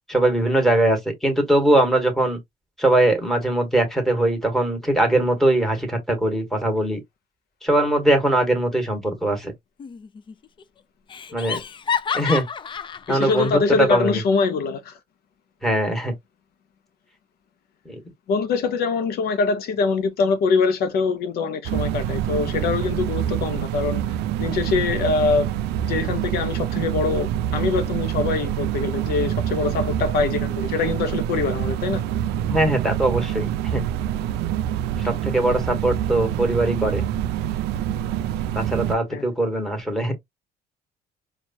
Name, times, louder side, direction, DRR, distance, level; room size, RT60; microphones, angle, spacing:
voice 1, 0.1-2.4 2.8-7.0 7.6-9.5 11.3-11.6 12.1-12.4 13.1-14.2 15.6-16.1 17.8-18.0 32.5-33.8 35.0-37.0 38.5-40.1, right 1 dB, ahead, 1.5 m, -21 dB
Laughter, 9.8-10.3 10.6-10.7 11.1-13.6, left 7 dB, 30° left, 0.4 m, -29 dB
voice 2, 13.1-15.0 18.3-24.0 24.4-32.0 39.1-39.2, left 4 dB, 65° left, 0.6 m, -24 dB
sound 1, 21.6-38.9, right 11 dB, 80° right, 0.4 m, -26 dB
4.5 x 2.3 x 2.7 m
cardioid pair, 110°, 17 cm